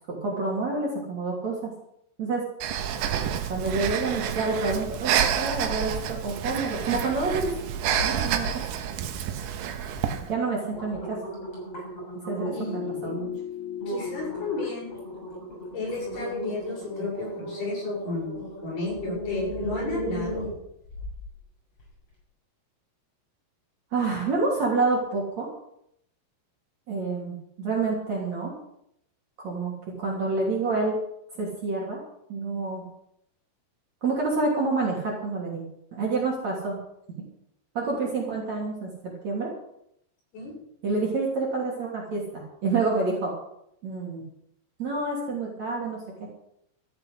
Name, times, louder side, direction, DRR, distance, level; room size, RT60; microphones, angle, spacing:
voice 1, 0.1-1.7 2.2-2.4 3.5-7.5 8.0-8.5 10.3-11.2 12.3-13.3 23.9-25.5 26.9-28.5 29.4-29.7 30.0-31.0 31.3-32.0 32.3-32.9 34.0-35.7 35.9-36.8 37.7-39.5 40.8-43.3 43.8-44.2 44.8-46.3, right 3 dB, 40° right, -3 dB, 4.0 m, -28 dB
Breathing, 2.6-10.3, right 9 dB, 75° right, 3.4 m, -28 dB
sound 1, 7.9-8.5 8.9-9.4 10.0-10.1 10.5-12.7 13.2-13.4 13.8-21.3 21.8-21.9, right 1 dB, 30° left, 7.5 m, -36 dB
sound 2, 12.3-17.5 17.8-17.9, left 9 dB, 75° left, 2.9 m, -39 dB
voice 2, 12.5-13.1 13.9-14.9 15.7-20.4 40.3-40.5, left 3 dB, 55° left, -3 dB, 9.1 m, -32 dB
14.5 x 9.8 x 8.2 m, 0.75 s
omnidirectional pair, 5.6 m